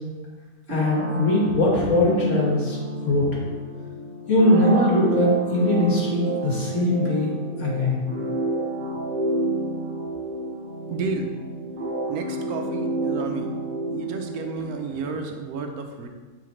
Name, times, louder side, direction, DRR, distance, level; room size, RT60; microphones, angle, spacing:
voice 1, 0.7-3.3 4.3-8.0, left 1 dB, 55° left, -4 dB, 2.1 m, -21 dB
sound 1, 0.7-15.2, right 2 dB, 45° right, 0.7 m, -30 dB
voice 2, 10.9-11.3 12.1-13.5 13.9-16.1, right 4 dB, 85° right, 4 dB, 1.2 m, -31 dB
10.5 x 4.0 x 3.2 m, 1.4 s
omnidirectional pair, 1.6 m